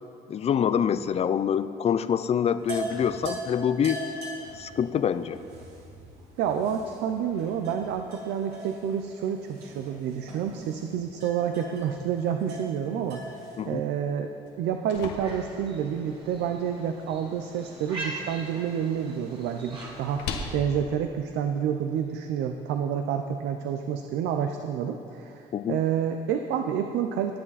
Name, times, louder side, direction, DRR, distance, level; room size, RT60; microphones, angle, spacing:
voice 1, 0.3-4.0 4.6-5.4 13.6-13.8 25.5-25.8, left 8 dB, 40° left, 13 dB, 0.5 m, -26 dB
sound 1, 2.6-13.6, right 1 dB, 70° right, 3.5 m, -41 dB
voice 2, 6.4-13.2 13.6-14.3 14.6-20.2 20.5-25.4 25.7-27.4, right 8 dB, 85° right, 6 dB, 0.6 m, -29 dB
sound 2, 14.5-22.4, left 4 dB, 85° left, 1.3 m, -42 dB
sound 3, 15.1-20.4, right 2 dB, 30° right, 2.6 m, -42 dB
20.5 x 7.7 x 4.1 m, 2.7 s
cardioid pair, 110°, 17 cm